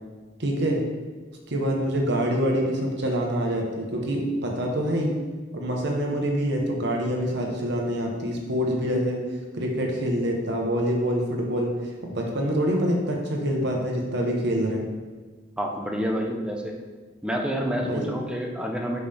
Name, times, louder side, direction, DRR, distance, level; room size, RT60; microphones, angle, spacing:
voice 1, 0.4-0.8 1.5-5.1 5.5-9.2 9.5-11.7 12.0-14.8 17.8-18.0, equal, 60° right, 0 dB, 1.1 m, -25 dB
voice 2, 15.6-16.8 17.2-19.0, equal, 5° right, 0 dB, 0.7 m, -28 dB
5.9 x 5.5 x 3.4 m, 1.4 s
head